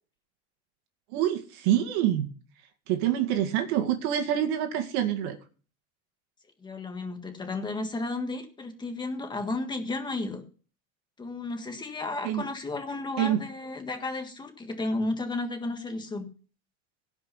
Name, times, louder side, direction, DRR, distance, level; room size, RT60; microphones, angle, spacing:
voice 1, 1.1-2.3 2.9-5.4 12.2-12.4 13.2-13.4, right 11 dB, 65° right, 6 dB, 2.0 m, -26 dB
voice 2, 6.6-10.4 11.2-16.3, left 2 dB, 10° left, 5 dB, 1.6 m, -33 dB
16.5 x 5.6 x 5.7 m, 0.39 s
supercardioid pair, 165°, 36 cm